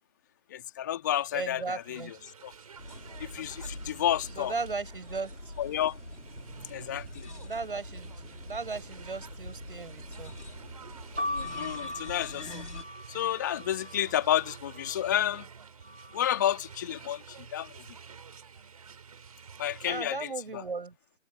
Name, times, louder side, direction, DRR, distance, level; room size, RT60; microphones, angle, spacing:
voice 1, 0.5-2.5 3.2-4.5 5.6-6.0 6.6-7.3 11.3-12.5 13.1-15.5 16.1-17.9 19.6-20.6, left 11 dB, 15° left, 2.5 m, -31 dB
sound 1, 1.0-20.0, right 6 dB, 30° right, 5.3 m, -50 dB
voice 2, 1.3-2.1 4.4-5.5 7.4-8.1 8.4-10.4 19.9-20.9, right 4 dB, 50° right, 7.2 m, -36 dB
sound 2, 2.8-12.8, left 1 dB, 85° left, 4.2 m, -44 dB
sound 3, 11.2-15.0 15.8-16.5, left 1 dB, 85° right, 5.6 m, -39 dB
figure-of-eight pair, 155°, 35 cm